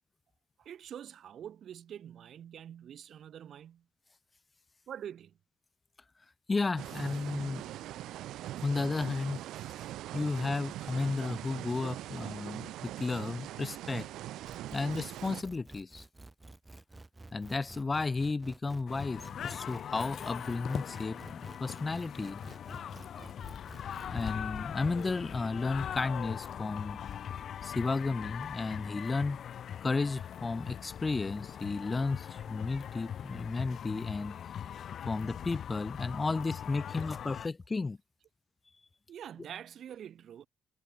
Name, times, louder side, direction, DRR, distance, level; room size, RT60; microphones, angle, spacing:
voice 1, 0.6-3.9 4.9-5.4 33.0-33.1 34.6-34.8 39.1-40.5, right 9 dB, 65° right, 1.2 m, -46 dB
voice 2, 6.5-7.6 8.6-9.4 10.1-14.1 14.7-16.1 17.3-22.4 24.1-27.0 27.6-29.4 29.8-34.4 35.1-38.0, left 3 dB, 25° left, 0.6 m, -33 dB
sound 1, 6.8-15.4, right 14 dB, 85° right, 0.3 m, -42 dB
sound 2, 14.5-24.3, right 2 dB, 20° right, 4.0 m, -51 dB
sound 3, 18.9-37.5, left 9 dB, 60° left, 1.0 m, -41 dB
cardioid pair, 90°, 0 cm